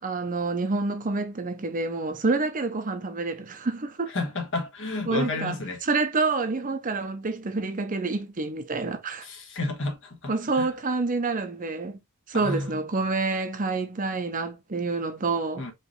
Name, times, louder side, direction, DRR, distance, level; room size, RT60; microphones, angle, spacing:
voice 1, 0.0-4.1 5.1-9.3 10.3-12.0 12.3-15.7, right 3 dB, 35° right, 0.7 m, -28 dB
voice 2, 4.1-5.8 9.2-10.7 12.3-12.7 15.6-15.7, left 2 dB, 60° left, 1.5 m, -31 dB
5.0 x 3.2 x 3.2 m
head